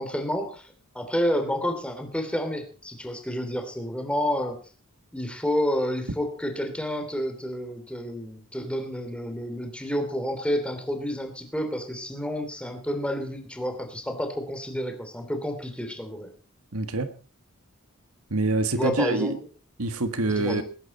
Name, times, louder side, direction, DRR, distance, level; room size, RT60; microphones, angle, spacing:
voice 1, 0.0-4.6 5.1-16.3 18.8-19.3 20.2-20.6, equal, 5° left, 5 dB, 2.8 m, -30 dB
voice 2, 16.7-17.1 18.3-19.4 19.8-20.6, right 2 dB, 80° right, 10 dB, 1.6 m, -25 dB
20.5 x 11.0 x 4.3 m, 0.36 s
head